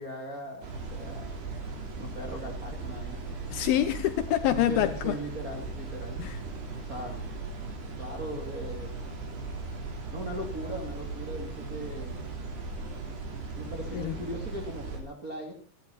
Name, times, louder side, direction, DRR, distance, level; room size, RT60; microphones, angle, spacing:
voice 1, 0.0-1.3 2.0-3.4 4.5-6.2 6.8-7.2 8.0-8.9 10.1-12.4 13.5-15.5, right 1 dB, 25° right, 2.4 m, -39 dB
sound 1, 0.6-15.0, right 3 dB, 80° right, 6.2 m, -38 dB
voice 2, 3.5-5.2 6.2-6.4 13.9-14.2, left 12 dB, 75° left, 2.7 m, -26 dB
27.0 x 11.0 x 4.2 m
omnidirectional pair, 4.6 m